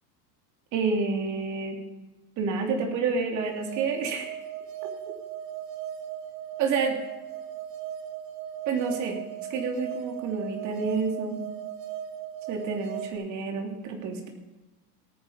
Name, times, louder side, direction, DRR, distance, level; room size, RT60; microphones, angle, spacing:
voice 1, 0.7-1.8 2.4-4.3 6.6-7.0 8.7-9.2 9.5-11.4 12.5-14.3, right 4 dB, 35° right, 2 dB, 3.0 m, -29 dB
sound 1, 3.4-13.1, right 10 dB, 80° right, 3.9 m, -37 dB
18.0 x 9.7 x 5.8 m, 1.1 s
supercardioid pair, 140°, 48 cm